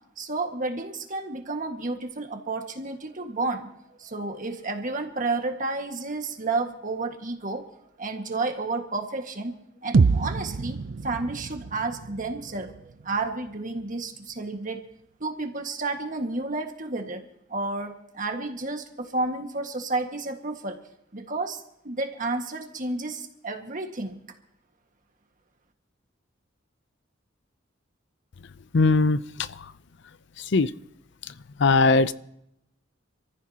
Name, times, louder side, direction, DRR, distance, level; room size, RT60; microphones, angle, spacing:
voice 1, 0.2-3.7 4.0-7.7 8.0-12.7 13.0-14.8 15.2-17.2 17.5-20.8 21.1-24.2, right 3 dB, 45° right, 4 dB, 1.7 m, -31 dB
sound 1, 9.9-13.9, right 4 dB, 70° right, 0.5 m, -27 dB
voice 2, 28.7-29.5 30.5-30.7 31.6-32.1, left 3 dB, 65° left, 15 dB, 0.5 m, -19 dB
27.0 x 15.0 x 2.9 m, 0.79 s
head